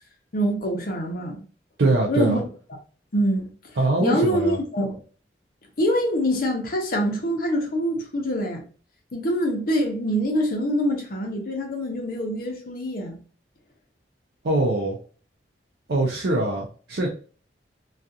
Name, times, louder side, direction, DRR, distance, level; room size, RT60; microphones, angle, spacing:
voice 1, 0.3-1.5 2.1-2.4 3.1-3.5 4.0-5.0 5.8-8.6 9.1-13.2, equal, 55° left, 0.7 m, -25 dB
voice 2, 1.8-2.4 3.8-4.6 14.4-15.0 15.9-17.1, right 2 dB, 65° right, 0.5 m, -22 dB
2.4 x 2.4 x 2.6 m
head